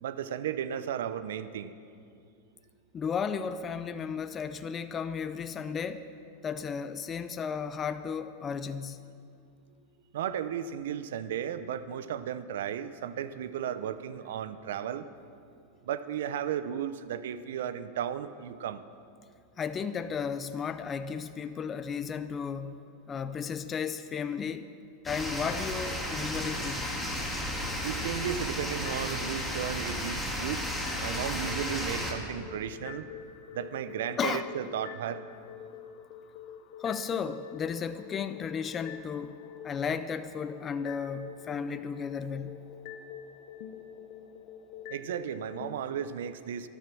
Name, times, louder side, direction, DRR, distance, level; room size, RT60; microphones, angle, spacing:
voice 1, 0.0-1.8 10.1-15.1 15.9-18.8 27.8-30.6 31.0-33.0 33.5-35.2 44.9-46.7, right 9 dB, 75° right, 13 dB, 0.7 m, -34 dB
voice 2, 2.9-6.0 6.4-9.0 19.6-22.8 23.1-24.7 25.0-26.9 34.2-34.5 36.8-39.4 39.6-42.6, left 6 dB, 25° left, 11 dB, 0.6 m, -34 dB
sound 1, 25.0-32.1, equal, ahead, 2.7 m, -33 dB
sound 2, 28.9-29.8 30.9-45.7, left 8 dB, 60° left, 0.9 m, -47 dB
12.5 x 11.5 x 6.1 m, 2.4 s
hypercardioid pair, 105°, 0 cm